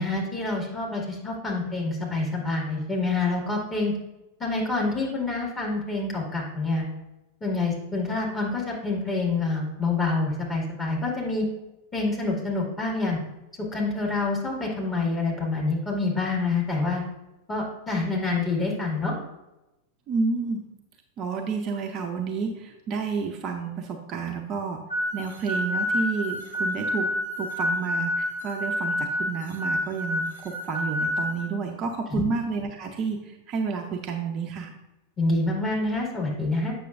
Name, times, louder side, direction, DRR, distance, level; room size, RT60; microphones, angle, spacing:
voice 1, 0.0-3.9 4.4-6.9 7.4-11.5 11.9-13.2 13.7-17.0 17.5-19.1 32.1-32.2 35.2-36.7, left 3 dB, 15° left, -4 dB, 2.3 m, -27 dB
voice 2, 20.1-20.7 21.2-24.8 25.1-27.1 27.4-34.7, right 5 dB, 35° right, 3 dB, 0.6 m, -30 dB
sound 1, 24.9-31.4, left 1 dB, 80° left, 1.8 m, -28 dB
8.3 x 6.2 x 2.6 m, 0.96 s
figure-of-eight pair, 90°, 0 cm